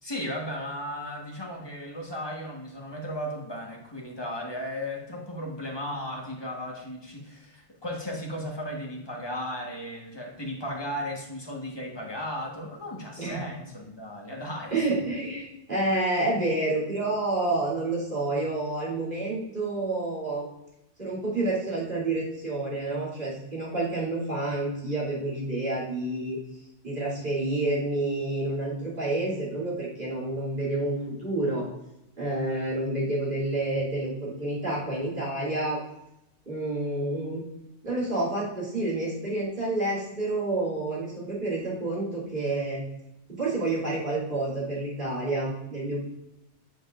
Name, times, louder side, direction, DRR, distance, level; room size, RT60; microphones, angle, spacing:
voice 1, 0.0-15.1, equal, 20° left, -1 dB, 1.3 m, -35 dB
voice 2, 14.7-20.5 21.0-26.4 26.8-31.6 32.2-35.8 36.5-37.4 37.8-42.8 43.3-46.1, right 2 dB, 50° right, -6 dB, 2.9 m, -29 dB
9.3 x 5.1 x 2.5 m, 0.88 s
omnidirectional pair, 1.2 m